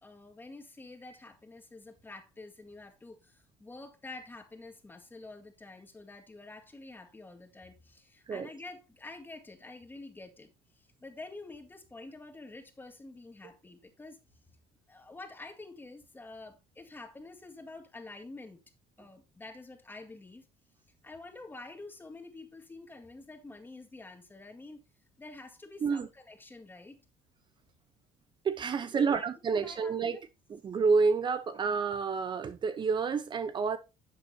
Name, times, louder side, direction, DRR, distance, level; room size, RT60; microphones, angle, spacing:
voice 1, 0.0-14.2 14.9-18.6 19.0-20.4 21.0-24.8 25.2-27.0 28.8-30.2, left 2 dB, 15° left, 2.0 m, -48 dB
voice 2, 28.4-33.8, right 5 dB, 35° right, 0.9 m, -29 dB
11.0 x 7.5 x 2.8 m
cardioid pair, 110°, 13 cm